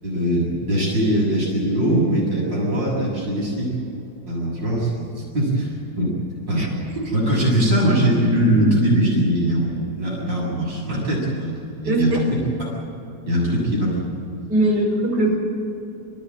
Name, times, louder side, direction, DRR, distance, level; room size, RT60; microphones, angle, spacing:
voice 1, 0.0-3.7 4.3-6.1 6.5-6.7 7.1-12.2 12.6-12.7 13.3-14.1, right 1 dB, 80° right, -5 dB, 8.0 m, -21 dB
voice 2, 11.8-12.2 14.5-15.4, right 1 dB, 60° right, -2 dB, 5.9 m, -20 dB
27.5 x 15.0 x 9.3 m, 2.8 s
omnidirectional pair, 2.0 m